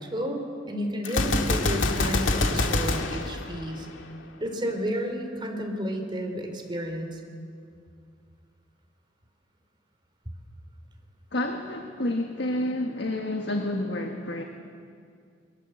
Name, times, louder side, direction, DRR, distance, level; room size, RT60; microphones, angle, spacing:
voice 1, 0.0-3.9 4.4-7.2, equal, 25° right, 3 dB, 3.4 m, -31 dB
Gunshot gunfire, 1.0-4.2, left 2 dB, 90° left, 2.1 m, -26 dB
voice 2, 11.3-14.4, left 1 dB, 60° left, 3 dB, 1.6 m, -29 dB
26.0 x 22.5 x 7.8 m, 2.3 s
head